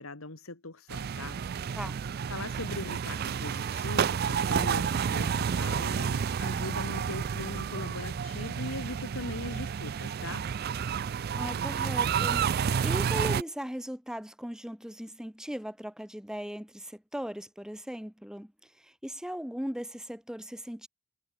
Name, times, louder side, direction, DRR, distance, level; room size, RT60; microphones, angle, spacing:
voice 1, 0.0-1.4 2.3-10.4, left 2 dB, 85° left, 2.7 m, -40 dB
sound 1, 0.9-13.4, right 7 dB, 45° right, 0.4 m, -30 dB
voice 2, 11.4-20.9, equal, 5° right, 1.1 m, -38 dB
head